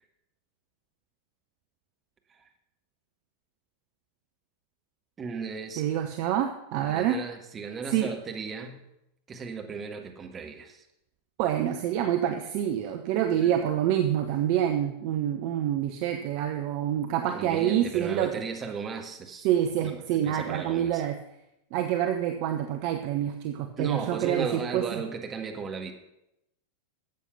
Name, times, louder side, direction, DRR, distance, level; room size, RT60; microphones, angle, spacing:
voice 1, 5.2-5.8 6.9-8.8 9.3-10.8 13.4-13.5 17.3-19.5 19.8-19.9 20.2-21.0 23.8-25.9, right 5 dB, 20° right, 4 dB, 1.7 m, -36 dB
voice 2, 5.8-7.2 7.9-8.1 11.4-18.3 19.4-21.2 21.7-25.0, right 10 dB, 45° right, 6 dB, 0.9 m, -27 dB
13.0 x 8.3 x 5.8 m, 0.84 s
figure-of-eight pair, 90°, 0 cm